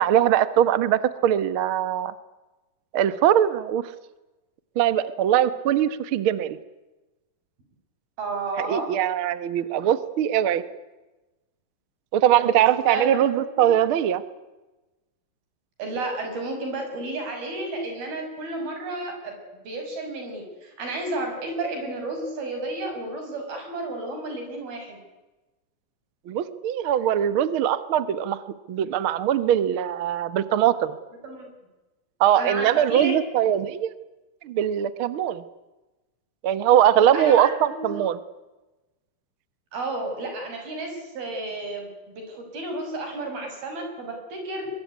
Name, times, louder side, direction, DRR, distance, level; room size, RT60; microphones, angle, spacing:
voice 1, 0.0-2.1 2.9-3.8 4.7-6.6 8.7-10.6 12.1-14.2 26.3-28.4 28.7-31.0 32.2-33.9 34.4-35.4 36.4-38.2, right 10 dB, 70° right, 14 dB, 1.2 m, -21 dB
voice 2, 8.2-8.9 12.4-12.6 12.9-13.7 15.8-19.4 19.6-25.0 31.2-31.5 32.4-33.1 37.1-38.0 39.7-44.7, right 2 dB, 85° right, 4 dB, 7.9 m, -32 dB
23.5 x 22.0 x 9.5 m, 1.1 s
omnidirectional pair, 4.2 m